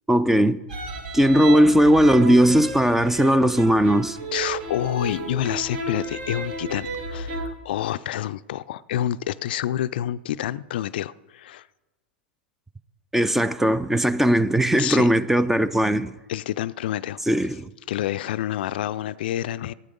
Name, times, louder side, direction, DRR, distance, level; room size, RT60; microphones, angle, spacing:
voice 1, 0.1-0.6 1.1-4.2 13.1-16.1 17.3-17.7, equal, 5° right, 0.4 m, -18 dB
sound 1, 0.7-7.5, right 2 dB, 60° right, 2.2 m, -32 dB
voice 2, 4.3-11.7 14.8-15.1 16.3-17.2 17.9-19.7, left 12 dB, 60° left, 0.4 m, -28 dB
13.0 x 8.4 x 5.2 m
hypercardioid pair, 105°, 6 cm